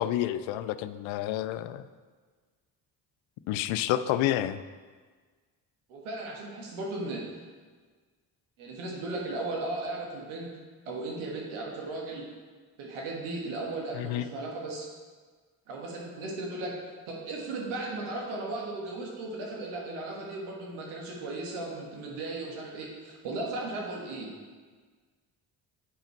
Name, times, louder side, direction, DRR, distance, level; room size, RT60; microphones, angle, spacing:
voice 1, 0.0-1.9 3.5-4.6 13.9-14.3, left 12 dB, 80° left, 13 dB, 0.5 m, -29 dB
voice 2, 5.9-7.2 8.6-10.5 10.8-12.3 12.8-14.9 15.7-16.8 17.1-24.3, right 2 dB, 85° right, -2 dB, 1.6 m, -36 dB
9.0 x 5.7 x 4.5 m, 1.5 s
hypercardioid pair, 45°, 47 cm